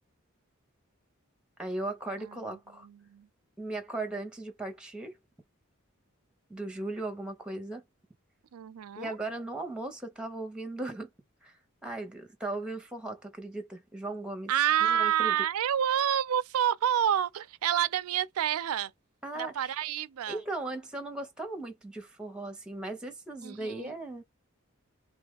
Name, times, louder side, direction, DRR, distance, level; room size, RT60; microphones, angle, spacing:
voice 1, 1.6-2.9 3.6-5.2 6.5-7.8 8.9-11.1 11.4-14.5 14.8-15.3 19.2-19.7 20.3-24.2, right 2 dB, 5° right, 0.8 m, -37 dB
voice 2, 2.8-3.3 8.5-9.2 14.5-18.9 19.4-20.4 23.4-23.9, right 10 dB, 85° right, 0.4 m, -28 dB
3.1 x 2.4 x 3.5 m
head